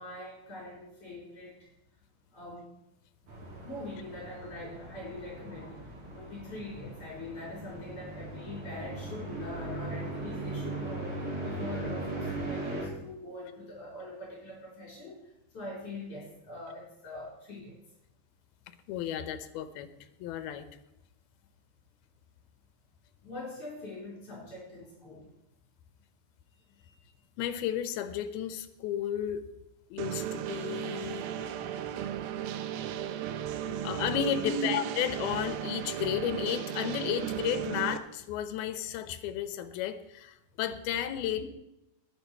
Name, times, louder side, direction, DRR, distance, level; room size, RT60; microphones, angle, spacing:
voice 1, 0.0-1.5 2.3-2.7 3.6-15.2 15.5-17.8 23.2-25.3 26.7-27.1 34.4-34.7, left 1 dB, 40° left, -5 dB, 5.2 m, -42 dB
sound 1, 3.3-12.9, right 2 dB, 50° right, 5.2 m, -39 dB
voice 2, 18.9-20.7 27.4-29.4 29.9-31.9 33.7-41.5, left 10 dB, 80° left, 11 dB, 2.8 m, -33 dB
sound 2, 30.0-38.0, right 10 dB, 80° right, 2.5 m, -35 dB
20.5 x 9.0 x 4.6 m, 0.88 s
omnidirectional pair, 4.3 m